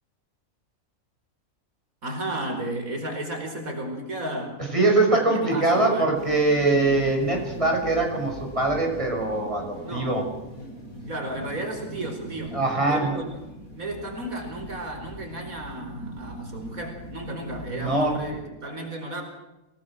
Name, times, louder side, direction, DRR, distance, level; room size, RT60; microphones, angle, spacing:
voice 1, 2.0-4.6 5.1-6.1 9.8-10.2 11.1-12.6 12.9-13.3 13.8-19.2, right 1 dB, 80° right, 3 dB, 5.1 m, -33 dB
voice 2, 4.7-10.2 12.5-13.2 17.7-18.2, right 2 dB, 20° right, 1 dB, 6.2 m, -23 dB
sound 1, 6.1-18.4, equal, 80° left, 8.4 m, -41 dB
27.5 x 19.0 x 6.2 m, 1.0 s
omnidirectional pair, 1.5 m